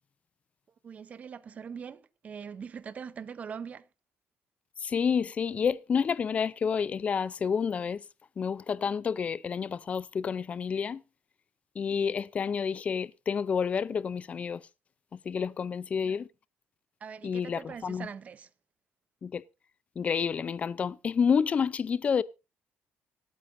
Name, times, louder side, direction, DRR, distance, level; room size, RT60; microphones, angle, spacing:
voice 1, 0.8-3.9 17.0-18.5, right 7 dB, 35° right, 0.7 m, -42 dB
voice 2, 4.8-8.0 8.4-11.0 11.8-14.6 15.1-16.3 17.2-18.1 19.2-19.4 20.0-22.2, left 6 dB, 30° left, 0.5 m, -29 dB
25.5 x 8.8 x 2.7 m
cardioid pair, 155°, 4 cm